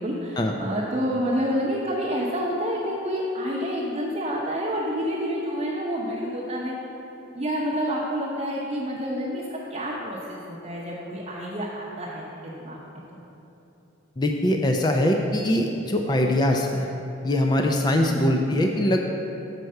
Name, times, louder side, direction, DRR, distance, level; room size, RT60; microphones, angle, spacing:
voice 1, 0.0-6.7 7.3-12.8 13.1-13.2, equal, 30° right, -6 dB, 0.7 m, -28 dB
voice 2, 14.2-16.9 17.2-19.0, left 1 dB, 20° left, 2 dB, 0.3 m, -22 dB
6.7 x 4.5 x 6.4 m, 2.9 s
head